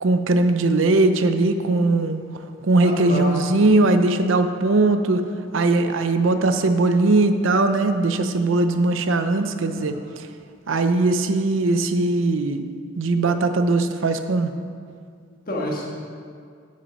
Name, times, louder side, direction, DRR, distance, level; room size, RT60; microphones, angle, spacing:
voice 1, 0.0-2.2 2.6-5.2 5.5-9.9 10.7-12.6 13.0-14.5, right 2 dB, 75° right, 9 dB, 0.6 m, -20 dB
voice 2, 2.8-3.4 9.8-10.0 15.3-15.9, left 1 dB, 45° left, -2 dB, 1.5 m, -29 dB
8.4 x 7.3 x 5.2 m, 2.2 s
head